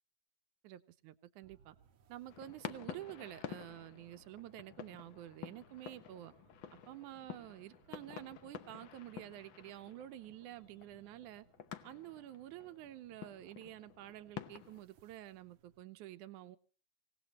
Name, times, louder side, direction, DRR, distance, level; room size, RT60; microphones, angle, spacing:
voice 1, 0.6-1.8 2.1-6.3 6.9-11.5 11.8-16.6, right 13 dB, 85° right, 12 dB, 2.4 m, -50 dB
sound 1, 1.4-15.8, right 8 dB, 65° right, 1.7 m, -70 dB
sound 2, 2.3-14.8, left 10 dB, 75° left, 1.1 m, -50 dB
25.0 x 17.5 x 3.0 m, 0.38 s
omnidirectional pair, 3.4 m